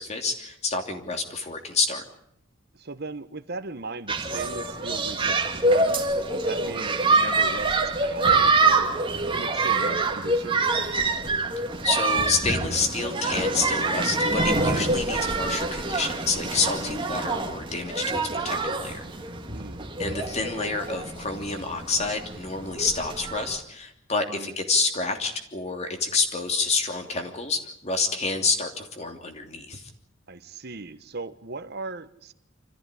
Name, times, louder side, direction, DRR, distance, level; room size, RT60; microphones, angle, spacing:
voice 1, 0.0-2.0 11.8-19.0 20.0-29.9, left 4 dB, 35° left, 5 dB, 3.0 m, -28 dB
voice 2, 2.7-8.9 9.2-11.2 19.5-19.9 24.3-24.5 30.3-32.3, right 3 dB, 55° right, 10 dB, 1.2 m, -37 dB
sound 1, 4.1-23.6, right 3 dB, 25° right, 2.2 m, -26 dB
26.0 x 14.5 x 10.0 m, 0.73 s
head